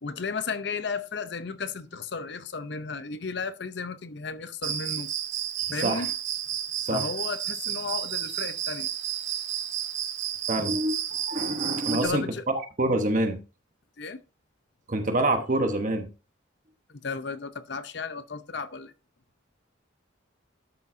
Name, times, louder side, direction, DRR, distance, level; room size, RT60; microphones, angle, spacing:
voice 1, 0.0-5.1 5.7-6.1 6.9-8.9 11.9-12.4 14.0-14.2 16.9-18.9, left 5 dB, 55° left, 0.7 m, -34 dB
Cricket, 4.6-12.1, right 10 dB, 65° right, 0.9 m, -31 dB
voice 2, 5.7-6.1 6.8-7.1 10.5-12.2 12.8-13.4 14.9-16.1, right 1 dB, 40° right, 1.1 m, -26 dB
12.0 x 6.7 x 2.7 m
head